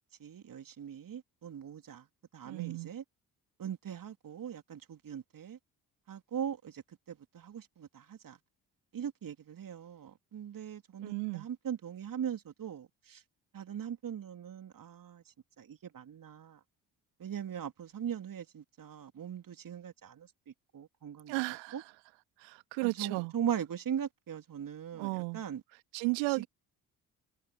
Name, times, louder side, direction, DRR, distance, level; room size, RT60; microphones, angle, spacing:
voice 1, 0.2-2.1 2.3-3.0 3.6-5.6 6.1-8.4 8.9-13.2 13.5-16.6 17.2-21.3 21.7-21.8 22.8-25.6 26.3-26.5, right 9 dB, 40° right, 3.5 m, -40 dB
voice 2, 2.4-2.9 11.0-11.5 21.3-21.8 22.4-23.3 24.9-25.4 25.9-26.5, right 29 dB, 65° right, 2.1 m, -34 dB
figure-of-eight pair, 45°, 49 cm